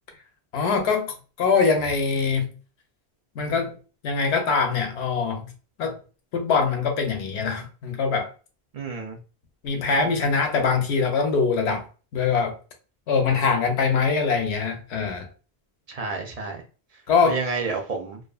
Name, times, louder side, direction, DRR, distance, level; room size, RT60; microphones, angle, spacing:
voice 1, 0.5-2.5 3.4-3.7 4.0-5.5 5.8-6.0 6.3-8.3 9.6-11.9 12.1-12.6 13.1-15.3 17.1-17.4, left 5 dB, 85° left, 4 dB, 0.9 m, -23 dB
voice 2, 8.7-9.2 15.9-16.6 17.2-18.2, right 4 dB, 55° right, 3 dB, 0.4 m, -30 dB
2.5 x 2.4 x 2.3 m, 0.35 s
omnidirectional pair, 1.1 m